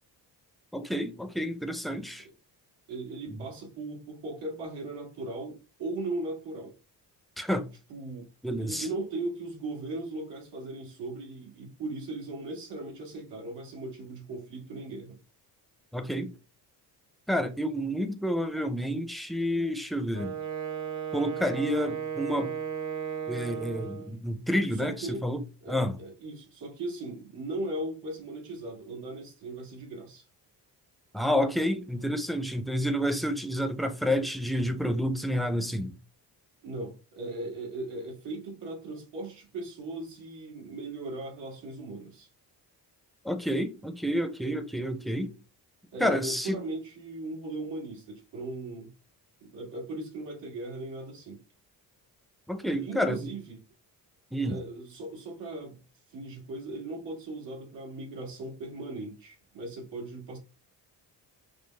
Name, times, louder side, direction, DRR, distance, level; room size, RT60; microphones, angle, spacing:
voice 1, 0.7-2.3 3.3-3.5 7.4-7.7 8.4-8.9 15.9-16.3 17.3-20.4 21.1-22.6 23.3-25.4 25.7-26.0 31.1-36.0 43.2-45.3 46.0-46.6 52.5-53.3 54.3-54.6, equal, ahead, 0.5 m, -29 dB
voice 2, 2.9-6.7 7.9-8.3 8.6-15.2 24.7-25.3 25.6-30.3 36.6-42.3 45.9-48.9 49.4-51.4 52.7-53.6 54.4-55.8 56.1-60.4, right 2 dB, 85° right, 1.7 m, -38 dB
Wind instrument woodwind instrument, 20.1-24.2, right 8 dB, 45° right, 0.8 m, -35 dB
5.1 x 2.0 x 3.3 m
cardioid pair, 90°, 41 cm